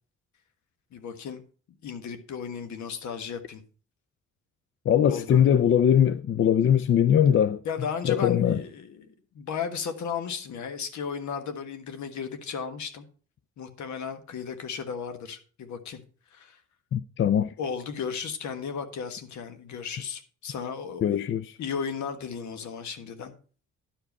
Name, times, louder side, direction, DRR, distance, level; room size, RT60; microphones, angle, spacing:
voice 1, 0.9-1.4 1.8-3.6 5.0-5.4 7.6-13.1 13.6-16.0 16.3-16.6 17.6-21.3 21.6-23.3, left 6 dB, 70° left, 1.5 m, -35 dB
voice 2, 4.9-7.6 8.1-8.6 16.9-17.5 21.0-21.5, left 9 dB, 45° left, 0.4 m, -21 dB
11.0 x 5.0 x 5.3 m
cardioid pair, 90°, 30 cm